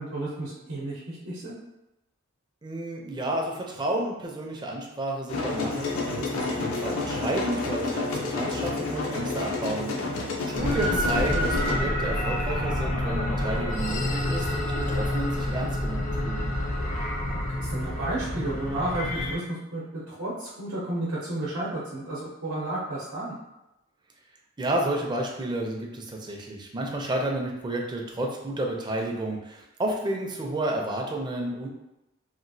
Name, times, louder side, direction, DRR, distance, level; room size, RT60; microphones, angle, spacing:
voice 1, 0.0-1.6 10.6-11.0 17.6-23.4, right 1 dB, 85° right, -7 dB, 0.7 m, -32 dB
voice 2, 2.6-9.9 10.6-16.5 24.6-31.7, right 1 dB, 20° right, 0 dB, 0.4 m, -31 dB
sound 1, 5.3-11.8, left 3 dB, 90° left, 0.5 m, -30 dB
sound 2, 10.5-19.4, left 1 dB, 40° left, 0.5 m, -28 dB
2.9 x 2.4 x 2.6 m, 0.94 s
head